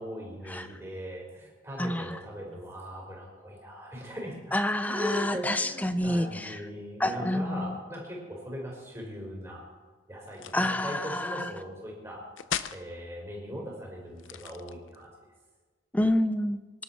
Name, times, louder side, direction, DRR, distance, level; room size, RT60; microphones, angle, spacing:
voice 1, 0.0-4.4 4.9-9.6 10.1-12.2 12.7-15.1, equal, 15° right, -3 dB, 4.4 m, -39 dB
voice 2, 1.8-2.2 4.5-6.6 7.0-7.8 10.5-11.5 15.9-16.6, left 1 dB, 10° left, 11 dB, 0.6 m, -28 dB
sound 1, 10.3-10.7 12.4-12.9 14.1-15.1, left 9 dB, 85° left, 0.6 m, -36 dB
24.0 x 12.0 x 4.3 m, 1.4 s
head